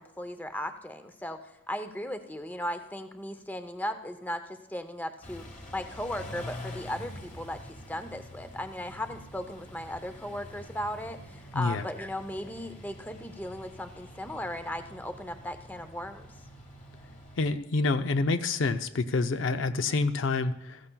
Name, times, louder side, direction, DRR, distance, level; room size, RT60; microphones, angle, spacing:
voice 1, 0.0-1.4 1.7-5.4 5.7-16.3, left 1 dB, 10° left, 9 dB, 0.6 m, -37 dB
Car / Idling / Accelerating revving vroom, 5.2-17.5, left 1 dB, 35° left, 1.6 m, -46 dB
voice 2, 17.4-20.8, left 3 dB, 65° left, 10 dB, 0.5 m, -27 dB
15.5 x 14.5 x 2.3 m, 0.95 s
head